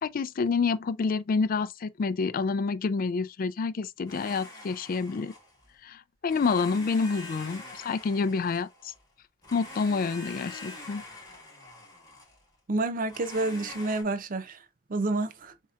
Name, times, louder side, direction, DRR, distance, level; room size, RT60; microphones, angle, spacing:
voice 1, 0.0-5.3 5.8-8.9 9.5-11.0, left 4 dB, 45° left, 0.4 m, -28 dB
Domestic sounds home sounds, 4.1-5.7 6.3-9.0 9.4-12.4 13.1-14.0, left 2 dB, 20° left, 2.4 m, -45 dB
voice 2, 12.7-14.6 14.9-15.5, right 2 dB, 45° right, 0.5 m, -29 dB
7.3 x 2.8 x 2.4 m
head